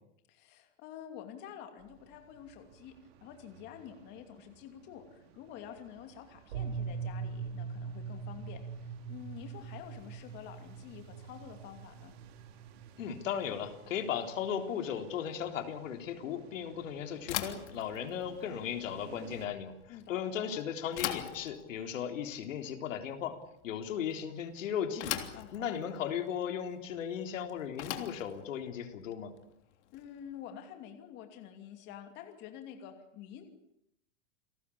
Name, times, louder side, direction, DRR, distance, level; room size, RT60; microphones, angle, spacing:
voice 1, 0.3-3.0 3.2-12.2 19.9-20.6 25.3-26.0 29.9-33.5, left 9 dB, 30° left, 6 dB, 2.8 m, -48 dB
sound 1, 1.8-19.5, right 9 dB, 55° right, 3.9 m, -58 dB
sound 2, 6.5-14.5, right 5 dB, 75° right, 5.1 m, -42 dB
voice 2, 13.0-23.4 23.6-25.2 25.5-29.3, left 8 dB, 85° left, 6 dB, 3.8 m, -36 dB
Bicycle / Thump thud, 17.2-30.3, left 12 dB, 65° left, 3.3 m, -43 dB
29.5 x 19.5 x 8.6 m, 0.78 s
supercardioid pair, 175°, 38 cm